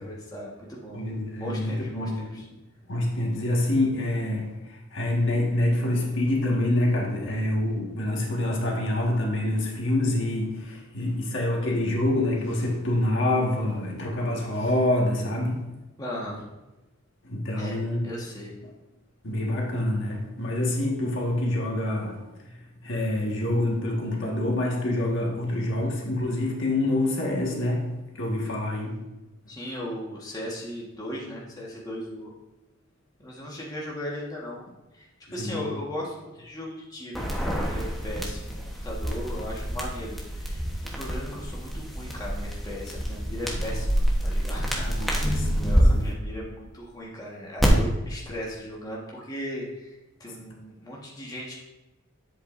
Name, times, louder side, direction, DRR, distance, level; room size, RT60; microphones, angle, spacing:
voice 1, 0.0-1.0 1.4-2.4 16.0-16.4 17.6-18.5 29.5-32.3 33.2-34.6 34.9-40.6 40.9-44.7 45.1-51.6, left 1 dB, 20° left, 1.5 m, -37 dB
voice 2, 0.9-2.4 2.9-15.7 17.2-18.0 19.2-29.1 35.3-35.8 43.4-43.8 44.7-46.1 50.3-50.4, left 1 dB, 60° left, 1.7 m, -27 dB
sound 1, 37.1-45.8 47.6-47.7, equal, ahead, 1.1 m, -28 dB
10.5 x 7.9 x 2.6 m
head